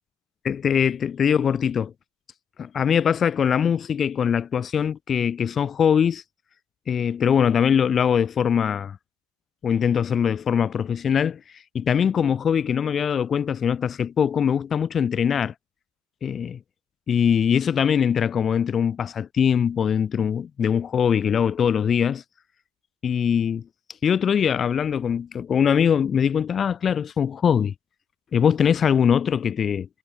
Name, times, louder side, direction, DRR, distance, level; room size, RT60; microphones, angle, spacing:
voice 1, 0.4-1.9 2.6-6.2 6.9-9.0 9.6-15.5 16.2-16.6 17.1-22.2 23.0-23.6 24.0-27.7 28.3-29.9, left 7 dB, 15° left, 2.6 m, -22 dB
supercardioid pair, 175°, 0 cm